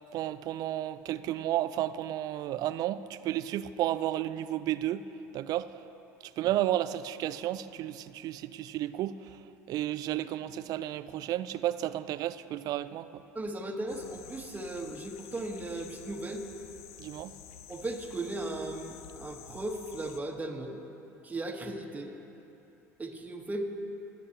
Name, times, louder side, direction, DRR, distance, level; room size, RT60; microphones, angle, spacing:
voice 1, 0.1-5.1 5.3-5.8 6.4-9.4 9.7-13.2 17.0-17.3, right 13 dB, 55° right, 14 dB, 0.4 m, -32 dB
voice 2, 13.3-16.5 17.7-20.8 21.2-22.2 23.0-23.7, right 2 dB, 20° right, 2 dB, 1.1 m, -37 dB
sound 1, 13.9-20.2, left 10 dB, 75° left, 0.4 m, -50 dB
20.5 x 7.4 x 2.8 m, 2.9 s
hypercardioid pair, 75°, 8 cm